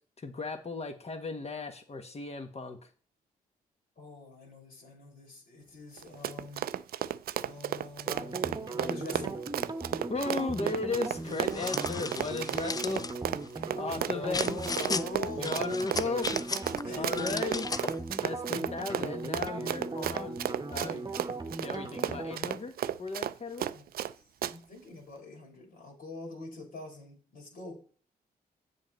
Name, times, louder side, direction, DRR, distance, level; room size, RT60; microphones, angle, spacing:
voice 1, 0.2-2.8 10.1-13.0 13.7-14.6 14.9-15.0 15.4-16.6 16.9-17.7 18.2-20.4 20.7-21.1 21.6-22.7 23.0-23.7, left 3 dB, 40° left, 1.4 m, -35 dB
voice 2, 4.0-6.7 7.4-9.5 11.2-11.4 13.8-15.5 16.8-17.4 23.7-23.9 24.4-27.8, left 2 dB, 60° left, 3.3 m, -44 dB
Run, 6.0-24.1 24.4-24.5, right 11 dB, 65° right, 0.4 m, -33 dB
sound 1, 8.1-22.4, right 3 dB, 25° right, 1.0 m, -38 dB
sound 2, 11.3-13.1 14.3-15.0 15.4-16.8 17.1-18.0, left 4 dB, 25° left, 0.4 m, -36 dB
7.4 x 6.1 x 4.1 m
cardioid pair, 60°, 17 cm